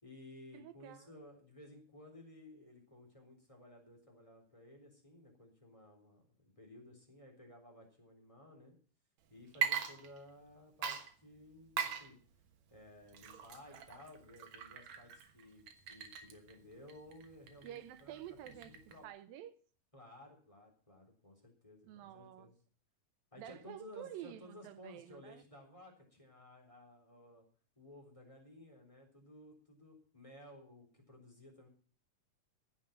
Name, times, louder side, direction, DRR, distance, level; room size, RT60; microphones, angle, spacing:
voice 1, 0.0-8.8 9.3-12.2 12.7-19.1 19.9-22.5 23.3-27.4 27.8-31.7, left 1 dB, 10° left, 3.4 m, -56 dB
voice 2, 0.5-1.2 17.6-18.7 19.0-19.6 21.9-22.5 23.4-25.4, right 11 dB, 80° right, 2.6 m, -50 dB
Water / Liquid, 9.5-10.5 10.8-19.0, right 8 dB, 60° right, 2.3 m, -42 dB
15.5 x 7.4 x 7.4 m
omnidirectional pair, 4.1 m